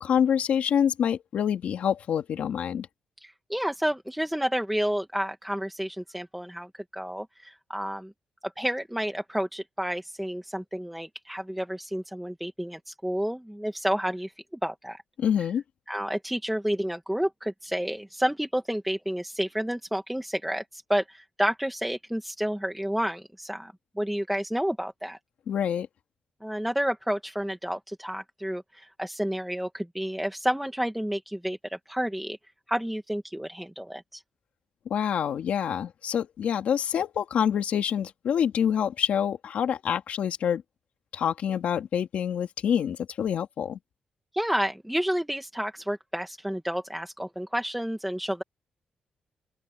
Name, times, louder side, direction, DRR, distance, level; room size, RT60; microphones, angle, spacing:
voice 1, 0.0-2.9 15.2-15.6 25.5-25.9 34.9-40.6 41.1-43.8, left 8 dB, 70° left, 2.4 m, -26 dB
voice 2, 3.2-8.1 8.4-14.3 14.6-15.0 15.9-25.2 26.4-32.4 32.7-34.2 44.3-48.4, equal, 5° right, 1.2 m, -30 dB
open air
wide cardioid pair, 150°, 2 cm